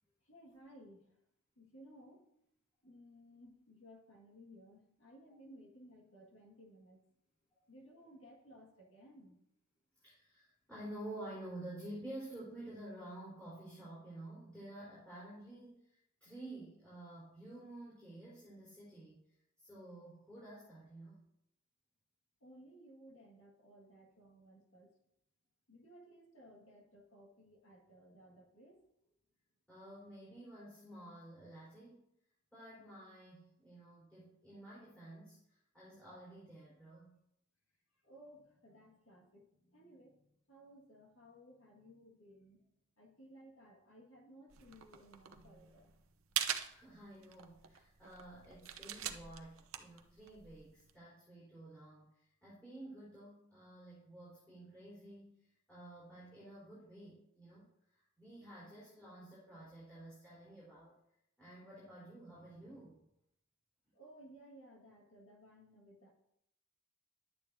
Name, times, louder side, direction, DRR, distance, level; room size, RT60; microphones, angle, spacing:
voice 1, 0.2-1.2 1.6-2.3 2.8-7.0 7.7-9.4 22.4-24.9 25.7-28.8 38.0-42.7 43.0-45.9 63.9-66.1, equal, 65° left, 1 dB, 1.8 m, -59 dB
voice 2, 10.0-19.2 19.6-21.2 29.7-32.0 32.5-37.2 46.7-55.4 55.7-60.9 61.4-63.0, right 1 dB, 5° left, -9 dB, 3.8 m, -51 dB
sound 1, 44.5-50.9, right 10 dB, 70° right, 0.7 m, -43 dB
11.5 x 8.7 x 2.7 m, 0.80 s
head